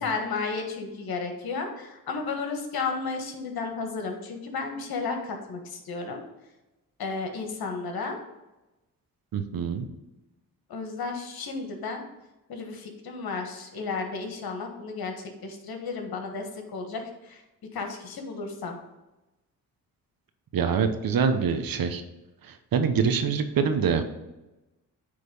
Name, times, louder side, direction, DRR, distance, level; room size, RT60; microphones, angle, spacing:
voice 1, 0.0-6.2 7.0-8.2 10.7-12.0 12.5-17.4 17.7-18.8, left 4 dB, 65° left, 4 dB, 1.5 m, -33 dB
voice 2, 9.3-9.9 20.5-22.0 22.4-24.0, right 6 dB, 60° right, 8 dB, 0.9 m, -25 dB
8.5 x 3.3 x 5.4 m, 1.0 s
supercardioid pair, 55°, 38 cm